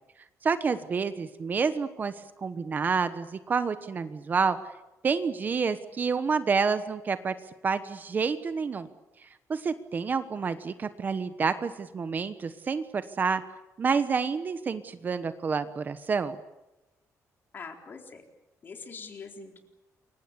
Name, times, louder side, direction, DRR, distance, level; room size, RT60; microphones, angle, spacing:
voice 1, 0.4-2.1 2.4-4.6 5.0-7.3 7.6-8.9 9.5-13.4 13.8-16.4, right 5 dB, 30° right, 11 dB, 1.1 m, -28 dB
voice 2, 17.5-18.2 18.6-19.6, left 4 dB, 35° left, 4 dB, 4.0 m, -43 dB
28.5 x 23.5 x 8.2 m, 1.0 s
cardioid pair, 165°, 6 cm